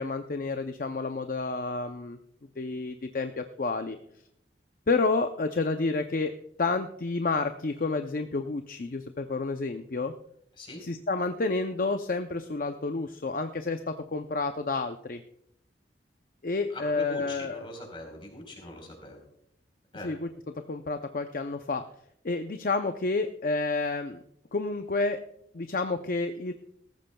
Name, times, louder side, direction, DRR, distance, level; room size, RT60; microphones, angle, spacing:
voice 1, 0.0-2.2 2.6-4.0 4.9-6.3 6.6-10.1 10.8-15.2 16.4-17.7 20.0-20.3 20.7-21.8 22.2-24.2 24.5-25.2 25.5-26.5, left 3 dB, 50° left, 7 dB, 0.6 m, -30 dB
voice 2, 16.7-19.2 19.9-20.1, left 1 dB, 30° left, 2 dB, 4.1 m, -42 dB
18.5 x 14.5 x 2.3 m, 0.74 s
head